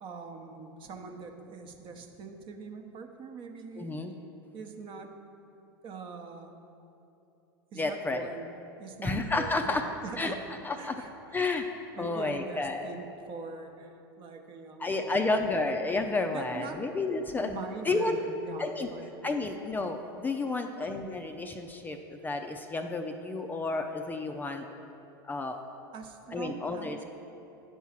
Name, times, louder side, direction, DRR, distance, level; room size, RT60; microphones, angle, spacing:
voice 1, 0.0-4.0 4.5-5.1 5.8-6.6 7.7-8.5 8.8-10.4 10.8-11.4 11.9-15.4 16.3-16.8 17.2-19.1 20.4-20.8 25.9-27.0, right 4 dB, 45° right, 5 dB, 0.8 m, -43 dB
voice 2, 3.8-4.1 7.8-8.3 9.0-9.8 10.2-10.4 10.6-11.0 11.3-11.7 12.0-12.9 14.8-18.2 18.6-18.9 19.2-24.6 25.2-25.6 26.3-27.0, left 3 dB, 15° left, 5 dB, 0.4 m, -31 dB
9.4 x 4.6 x 5.8 m, 2.9 s
hypercardioid pair, 100°, 13 cm